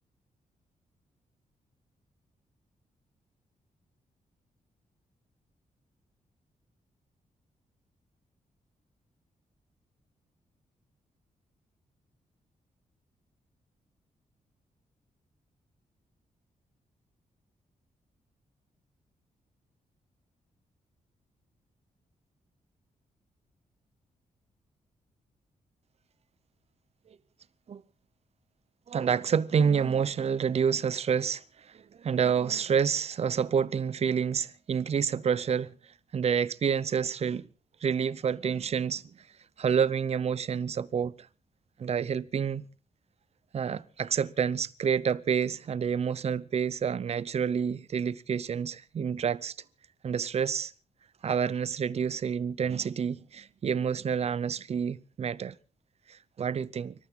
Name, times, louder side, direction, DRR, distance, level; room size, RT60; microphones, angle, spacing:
voice 1, 28.9-31.4 31.7-35.7 36.1-37.5 37.8-39.0 39.6-41.1 41.8-42.6 43.5-49.5 50.0-50.7 51.2-55.5 56.1-56.9, right 7 dB, 50° right, 0.7 m, -28 dB
30.0 x 12.5 x 3.8 m
cardioid pair, 110°, 14 cm